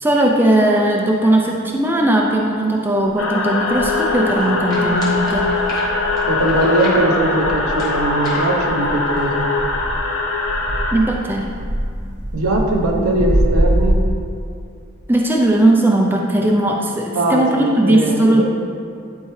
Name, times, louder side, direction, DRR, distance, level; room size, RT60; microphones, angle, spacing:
voice 1, 0.0-5.5 10.9-11.5 15.1-18.4, right 1 dB, 10° right, 0 dB, 0.4 m, -17 dB
sound 1, 3.1-3.2 3.7-4.4 4.8-14.1, equal, 35° right, 0.9 m, -24 dB
sound 2, 3.2-10.9, left 3 dB, 70° left, 0.8 m, -21 dB
sound 3, 4.1-9.4, left 1 dB, 15° left, 1.4 m, -35 dB
voice 2, 6.3-9.5 12.3-14.0 17.1-18.4, right 1 dB, 85° right, 1 dB, 1.0 m, -20 dB
11.0 x 4.5 x 3.2 m, 2.4 s
head